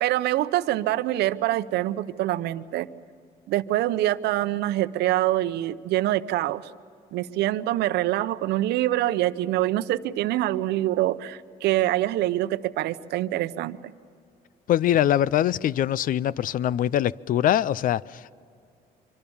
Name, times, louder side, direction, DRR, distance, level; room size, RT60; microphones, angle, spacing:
voice 1, 0.0-2.9 3.5-6.7 7.1-13.8, right 14 dB, 80° right, 0.8 m, -25 dB
voice 2, 14.7-18.4, left 11 dB, 55° left, 0.6 m, -23 dB
25.5 x 24.5 x 7.2 m
cardioid pair, 110°, 17 cm